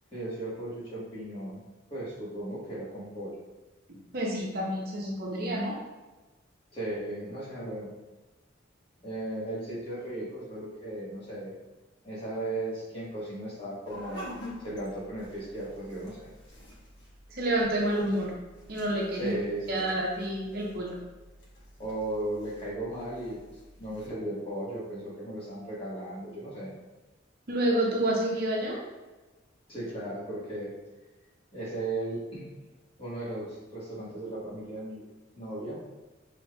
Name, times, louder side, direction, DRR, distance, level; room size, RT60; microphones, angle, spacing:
voice 1, 0.1-1.6 1.9-3.3 6.7-7.9 9.0-11.5 12.0-14.3 14.6-16.3 19.1-19.9 21.8-26.8 29.7-30.7 31.5-32.4 33.0-35.0 35.3-35.8, right 1 dB, 30° left, -7 dB, 1.3 m, -36 dB
voice 2, 4.1-5.8 17.3-18.3 18.7-19.3 19.7-21.0 27.5-28.8, right 1 dB, 50° right, -2 dB, 0.7 m, -28 dB
sound 1, 13.8-24.1, left 1 dB, 60° left, 1.3 m, -48 dB
5.7 x 3.4 x 2.3 m, 1.2 s
head